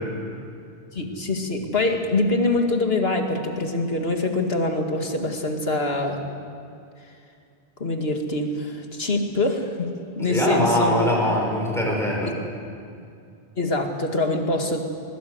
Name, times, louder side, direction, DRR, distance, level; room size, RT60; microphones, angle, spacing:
voice 1, 0.9-6.2 7.8-9.9 10.2-11.0 13.6-14.8, left 2 dB, 70° left, 4 dB, 2.3 m, -24 dB
voice 2, 10.3-12.3, equal, ahead, -2 dB, 5.1 m, -22 dB
21.0 x 20.5 x 8.0 m, 2.4 s
omnidirectional pair, 1.1 m